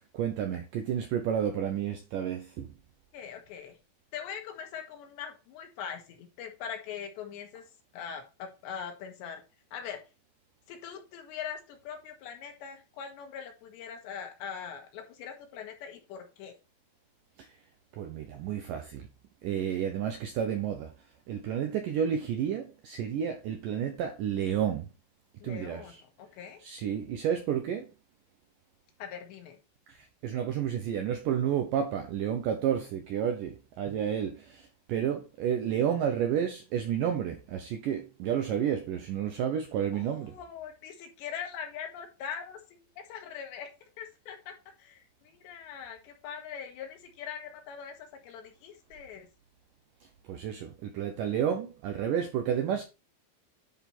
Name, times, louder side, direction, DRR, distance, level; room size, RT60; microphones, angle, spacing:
voice 1, 0.1-2.7 18.0-19.1 19.4-20.9 21.3-24.9 25.4-25.8 26.6-27.9 30.2-40.3 50.3-52.8, right 9 dB, 85° right, 1.9 m, -31 dB
voice 2, 3.1-3.8 4.1-7.7 7.9-9.4 9.7-10.0 10.7-16.5 25.4-26.6 29.0-29.6 39.9-49.3, left 7 dB, 85° left, 3.8 m, -42 dB
10.5 x 4.2 x 4.4 m
omnidirectional pair, 4.9 m